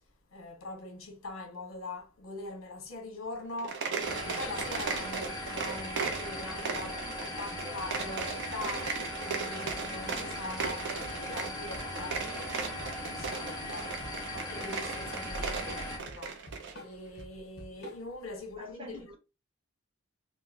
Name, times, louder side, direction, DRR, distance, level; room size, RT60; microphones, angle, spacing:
voice 1, 0.3-3.8 4.1-7.0 7.4-16.5 16.8-19.2, left 2 dB, 70° left, 1.1 m, -42 dB
sound 1, 3.5-16.8, right 5 dB, 55° right, 0.6 m, -37 dB
sound 2, 4.0-16.0, left 1 dB, 20° left, 0.9 m, -39 dB
voice 2, 6.8-7.8 18.6-19.2, equal, 25° right, 1.0 m, -48 dB
Drum kit / Drum, 9.7-18.3, equal, 50° left, 1.1 m, -48 dB
3.7 x 2.3 x 2.6 m
head